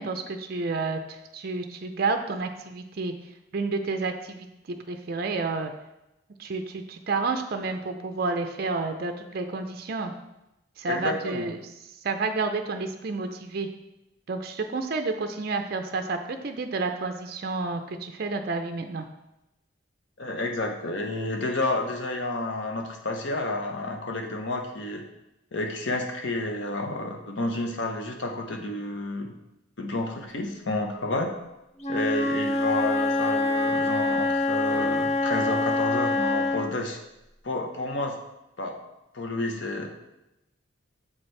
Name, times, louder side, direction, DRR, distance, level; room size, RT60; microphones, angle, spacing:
voice 1, 0.0-3.1 3.5-5.7 6.4-10.1 10.8-11.7 12.0-13.7 14.3-19.1, right 3 dB, 50° right, 6 dB, 0.4 m, -30 dB
voice 2, 10.9-11.5 20.2-25.0 25.5-29.3 29.8-31.3 31.9-37.0 37.4-38.2 38.6-38.8 39.1-39.9, left 2 dB, 65° left, 3 dB, 0.8 m, -30 dB
Wind instrument woodwind instrument, 31.8-36.8, left 2 dB, 35° left, 0.6 m, -25 dB
7.2 x 4.4 x 3.2 m, 0.91 s
head